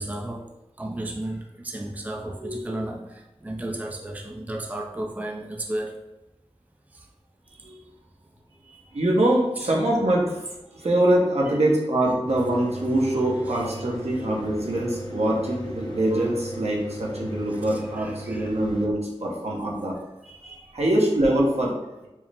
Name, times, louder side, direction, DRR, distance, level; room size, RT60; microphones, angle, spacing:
voice 1, 0.0-6.0 6.9-7.1 9.6-9.7 17.7-18.5, right 1 dB, 15° right, 1 dB, 0.4 m, -34 dB
voice 2, 2.4-2.7 7.6-7.8 8.9-10.4 10.7-19.9 20.2-22.1, right 1 dB, 75° right, -3 dB, 1.0 m, -24 dB
Mechanical fan, 12.3-18.9, equal, 45° left, 0.8 m, -38 dB
4.5 x 2.1 x 3.5 m, 0.99 s
wide cardioid pair, 55°, 11 cm